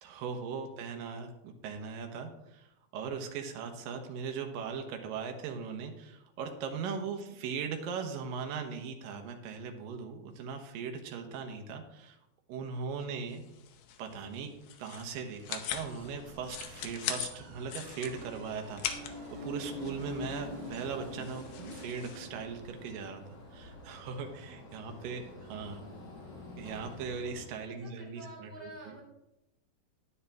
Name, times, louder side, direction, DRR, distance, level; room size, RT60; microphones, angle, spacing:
voice 1, 0.0-12.2 12.5-13.4 14.0-14.5 14.8-23.2 23.5-25.8 26.6-28.5, right 6 dB, 70° right, 4 dB, 2.4 m, -39 dB
sound 1, 13.3-22.2, left 9 dB, 75° left, 2.2 m, -42 dB
sound 2, 15.7-27.5, left 2 dB, 25° left, 2.2 m, -46 dB
sound 3, 17.3-22.3, right 7 dB, 85° right, 1.8 m, -56 dB
voice 2, 24.4-25.0 27.7-29.0, right 1 dB, 10° left, -7 dB, 3.7 m, -51 dB
9.9 x 9.5 x 3.5 m, 0.89 s
omnidirectional pair, 4.7 m